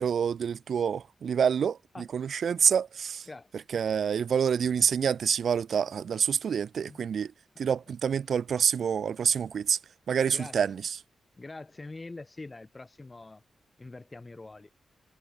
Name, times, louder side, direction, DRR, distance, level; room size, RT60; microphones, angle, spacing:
voice 1, 0.0-1.8 2.1-3.3 3.7-7.3 7.6-9.8 10.1-11.0, right 7 dB, 70° right, 0.6 m, -27 dB
voice 2, 3.3-3.6 6.8-7.0 7.5-7.7 10.3-10.6 11.4-13.4 13.8-14.7, left 2 dB, 25° left, 2.5 m, -44 dB
cardioid pair, 90°, 0 cm